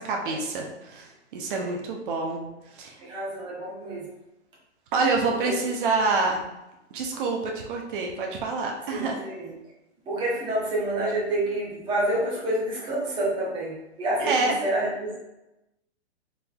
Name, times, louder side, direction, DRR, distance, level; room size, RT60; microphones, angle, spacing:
voice 1, 0.0-2.4 2.7-3.0 4.9-6.4 6.9-9.2 14.2-14.6, right 3 dB, 50° right, 0 dB, 0.8 m, -27 dB
voice 2, 3.0-4.1 5.5-5.6 8.9-9.5 10.1-15.2, right 1 dB, 15° right, -5 dB, 1.0 m, -28 dB
4.1 x 3.6 x 2.3 m, 0.95 s
hypercardioid pair, 140°, 34 cm